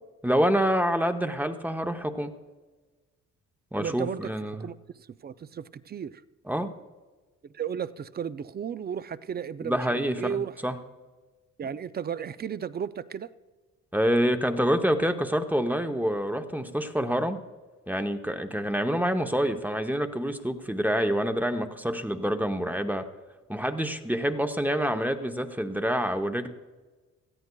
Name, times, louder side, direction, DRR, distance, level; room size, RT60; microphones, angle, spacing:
voice 1, 0.2-2.3 3.7-4.7 6.5-6.7 9.6-10.7 13.9-17.4 17.9-23.0 23.5-26.5, equal, 5° right, 6 dB, 0.8 m, -27 dB
voice 2, 3.8-4.3 4.6-6.2 7.4-10.6 11.6-13.3, right 8 dB, 35° right, 15 dB, 0.4 m, -34 dB
17.5 x 13.5 x 2.3 m, 1.3 s
cardioid pair, 90°, 30 cm